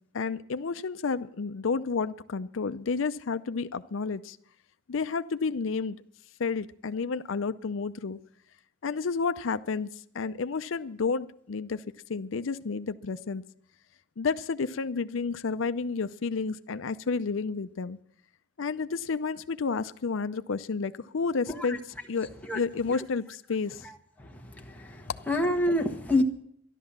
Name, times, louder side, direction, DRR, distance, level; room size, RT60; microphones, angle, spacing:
voice 1, 0.1-4.4 4.9-6.0 6.4-8.2 8.8-9.9 10.1-11.8 12.1-13.4 14.2-18.0 18.6-21.8 22.1-22.3 22.5-23.8, left 4 dB, 85° left, 12 dB, 0.5 m, -30 dB
voice 2, 25.3-26.2, left 1 dB, 10° left, 2 dB, 1.2 m, -26 dB
13.0 x 11.5 x 7.3 m, 0.69 s
head